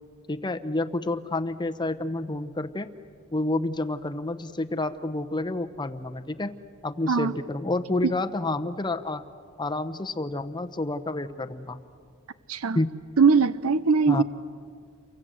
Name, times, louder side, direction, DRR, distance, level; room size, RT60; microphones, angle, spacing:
voice 1, 0.3-2.9 3.3-6.5 6.8-9.2 9.6-11.8 12.7-12.9 14.1-14.2, left 2 dB, 20° left, 0.9 m, -29 dB
voice 2, 13.2-14.2, right 5 dB, 75° right, 0.6 m, -21 dB
29.5 x 24.0 x 7.7 m
head